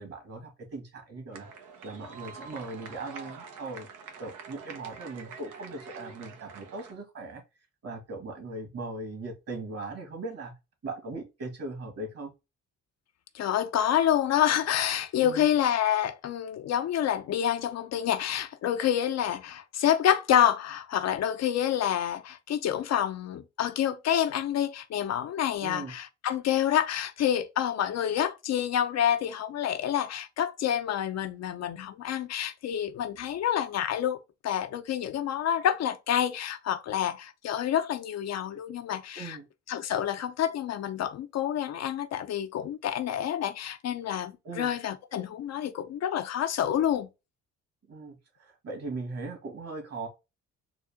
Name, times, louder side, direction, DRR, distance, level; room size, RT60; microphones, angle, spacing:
voice 1, 0.0-1.5 1.8-3.9 4.2-7.4 7.8-10.5 10.8-12.3 15.2-15.5 25.6-25.9 39.2-39.5 44.4-44.7 47.9-50.1, right 3 dB, 55° right, 1.9 m, -39 dB
sound 1, 1.3-6.9, right 5 dB, 90° right, 1.0 m, -46 dB
voice 2, 13.3-39.4 39.7-47.1, left 10 dB, 60° left, 0.5 m, -28 dB
4.0 x 2.3 x 3.5 m
cardioid pair, 90°, 30 cm